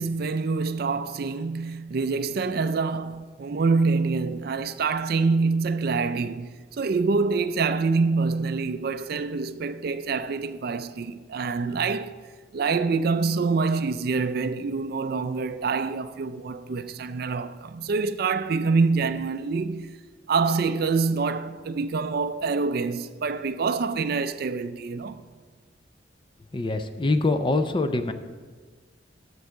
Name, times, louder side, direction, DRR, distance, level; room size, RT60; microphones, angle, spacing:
voice 1, 0.0-12.1 12.5-20.0 20.3-25.2, right 4 dB, 55° right, 0.4 m, -26 dB
voice 2, 26.5-28.1, left 2 dB, 25° left, 0.5 m, -24 dB
8.0 x 6.9 x 6.4 m
head